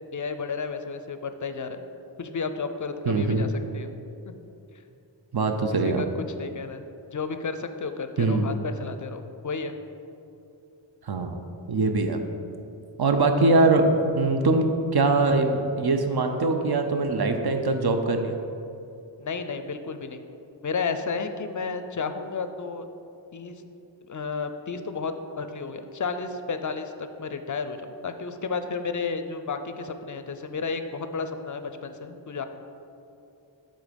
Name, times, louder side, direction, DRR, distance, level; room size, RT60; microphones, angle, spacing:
voice 1, 0.1-1.8 2.2-3.9 4.3-4.4 5.8-6.8 7.1-9.8 19.2-20.2 20.6-22.9 23.3-23.6 24.1-27.8 28.0-32.4, left 4 dB, 40° left, 8 dB, 0.4 m, -32 dB
voice 2, 3.1-3.4 5.3-6.0 8.2-8.5 11.1-11.4 11.7-12.2 13.0-18.4, right 3 dB, 55° right, 6 dB, 0.6 m, -22 dB
7.3 x 3.7 x 5.1 m, 2.7 s
wide cardioid pair, 60°, 47 cm